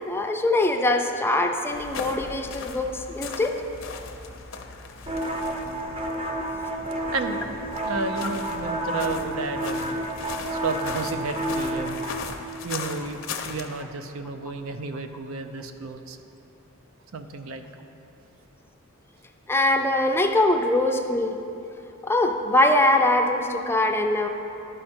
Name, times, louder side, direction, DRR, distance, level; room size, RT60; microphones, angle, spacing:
voice 1, 0.0-3.6 19.5-21.4 22.0-24.3, left 1 dB, 10° left, 4 dB, 0.4 m, -22 dB
sound 1, 1.7-13.8, left 5 dB, 65° left, 0.6 m, -39 dB
sound 2, 5.1-12.3, right 1 dB, 30° right, 0.8 m, -30 dB
voice 2, 7.0-9.9 10.5-12.0 12.6-13.2 13.4-16.2 17.1-17.6, right 3 dB, 85° right, 8 dB, 0.5 m, -32 dB
11.5 x 5.0 x 4.3 m, 2.9 s
head